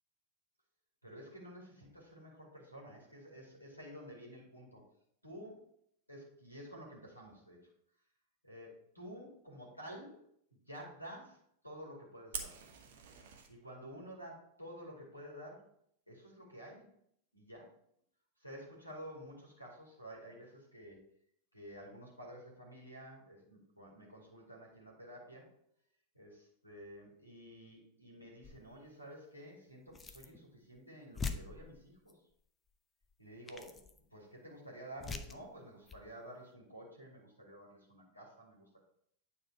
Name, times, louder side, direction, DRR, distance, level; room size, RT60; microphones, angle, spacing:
voice 1, 1.0-4.9 5.2-5.7 6.1-7.7 8.4-10.2 10.5-12.6 13.5-15.7 16.1-16.9 17.3-17.8 18.4-21.0 21.5-25.5 26.1-32.2 33.2-33.8 34.1-38.8, equal, 85° left, -2 dB, 2.3 m, -51 dB
Fire, 12.3-13.5, right 6 dB, 55° right, 1.0 m, -44 dB
sound 1, 28.4-28.8 29.9-30.4 30.8-30.9 31.1-32.1 33.0-33.1 33.5-34.0 35.0-35.4 35.9-36.0, left 4 dB, 15° left, 0.6 m, -43 dB
9.1 x 4.3 x 4.6 m, 0.67 s
figure-of-eight pair, 90°, 0 cm